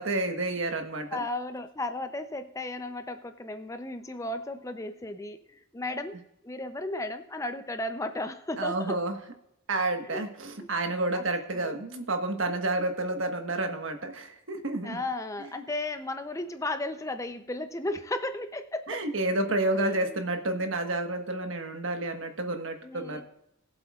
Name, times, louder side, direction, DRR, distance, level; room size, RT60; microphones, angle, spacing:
voice 1, 0.0-1.2 8.6-9.2 9.7-15.0 18.9-23.2, right 2 dB, 70° right, 6 dB, 1.4 m, -30 dB
voice 2, 1.1-6.2 6.4-9.0 10.0-10.3 11.1-11.2 11.5-11.8 14.8-19.1 19.8-20.2 22.8-23.2, left 2 dB, 15° left, 8 dB, 0.6 m, -35 dB
21.0 x 7.7 x 2.4 m, 0.81 s
head